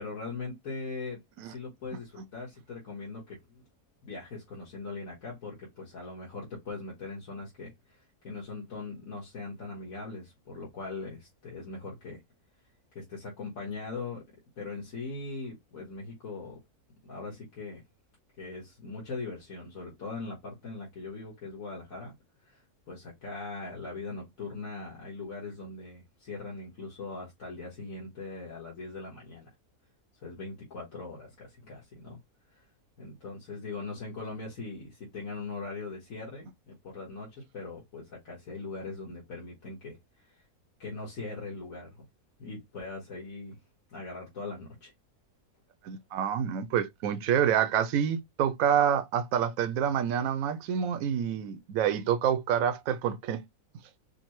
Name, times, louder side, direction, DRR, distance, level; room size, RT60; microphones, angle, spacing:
voice 1, 0.0-3.6 4.0-12.2 12.9-14.2 14.6-16.6 17.1-17.8 18.4-22.1 22.5-29.5 30.2-32.2 32.5-32.6 33.0-40.0 40.2-40.4 40.8-42.0 42.4-43.6 43.9-44.9, left 3 dB, 60° left, 1.8 m, -40 dB
voice 2, 45.8-53.5, right 9 dB, 70° right, 1.0 m, -27 dB
5.1 x 2.1 x 3.0 m
omnidirectional pair, 1.6 m